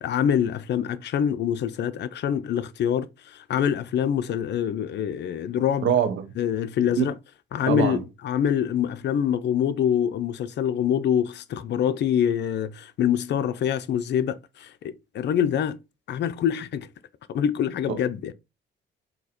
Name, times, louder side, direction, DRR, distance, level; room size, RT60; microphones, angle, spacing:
voice 1, 0.0-5.9 6.4-7.1 7.5-15.8 16.1-16.9 17.3-18.3, left 9 dB, 60° left, 0.5 m, -25 dB
voice 2, 5.8-6.2 7.0-7.1 7.7-8.0 17.9-18.0, right 8 dB, 75° right, 0.9 m, -23 dB
3.9 x 2.8 x 4.2 m
cardioid pair, 90°, 20 cm